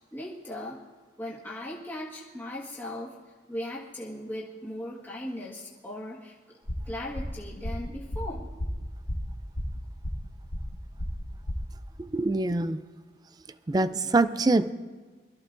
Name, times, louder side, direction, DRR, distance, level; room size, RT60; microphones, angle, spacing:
voice 1, 0.1-0.8 1.2-3.1 3.5-6.3 6.8-8.5, left 1 dB, 10° left, -6 dB, 1.6 m, -38 dB
sound 1, 6.7-11.6, equal, 80° left, 1.6 m, -34 dB
voice 2, 12.0-12.8 13.7-14.7, right 2 dB, 20° right, 13 dB, 0.4 m, -24 dB
22.5 x 13.5 x 2.6 m, 1.4 s
head